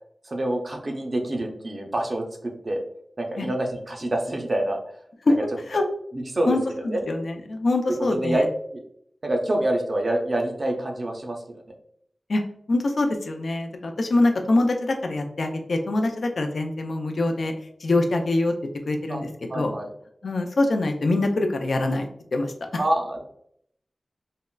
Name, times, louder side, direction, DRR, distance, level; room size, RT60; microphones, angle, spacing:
voice 1, 0.2-2.8 3.2-4.8 6.1-6.6 6.9-7.1 8.0-8.5 9.2-11.7 19.1-19.2 19.5-19.9 22.8-23.2, right 1 dB, 50° right, 1 dB, 0.5 m, -26 dB
voice 2, 6.5-8.5 12.3-12.4 12.7-17.5 17.8-18.5 18.9-19.3 19.5-19.7 20.2-22.8, left 2 dB, 75° left, 4 dB, 0.4 m, -24 dB
3.5 x 2.1 x 2.2 m, 0.68 s
wide cardioid pair, 100°, 0 cm